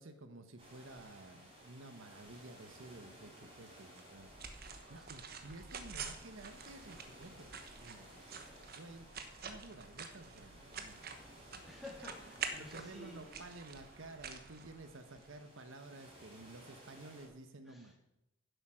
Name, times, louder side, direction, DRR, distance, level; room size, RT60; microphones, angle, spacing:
voice 1, 0.0-4.4 4.9-9.1 9.4-11.7 12.6-17.9, right 2 dB, 75° right, 8 dB, 1.0 m, -53 dB
sound 1, 0.6-17.3, right 1 dB, 25° right, 3.8 m, -58 dB
sound 2, 4.0-15.3, right 5 dB, 45° right, 1.1 m, -48 dB
voice 2, 8.4-8.8 11.6-13.4 17.7-17.9, left 2 dB, ahead, -2 dB, 2.6 m, -53 dB
10.0 x 8.1 x 6.3 m, 0.90 s
head